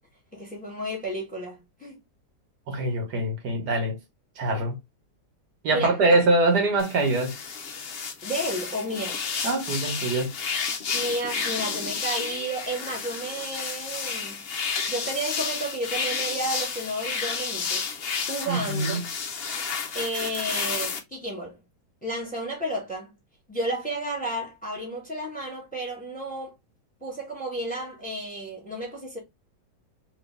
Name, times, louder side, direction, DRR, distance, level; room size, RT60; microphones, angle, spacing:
voice 1, 0.3-2.0 5.7-6.1 8.2-9.2 10.9-14.4 14.9-17.8 18.3-19.0 19.9-21.6 22.0-23.1 23.5-26.5 27.0-29.2, right 1 dB, 5° left, 1.5 m, -32 dB
voice 2, 2.7-4.0 4.4-4.8 5.6-7.3 9.4-10.3 18.5-19.0, right 2 dB, 70° right, 1.6 m, -23 dB
sound 1, 6.8-21.0, left 6 dB, 60° left, 0.6 m, -31 dB
3.3 x 3.1 x 3.3 m
omnidirectional pair, 1.9 m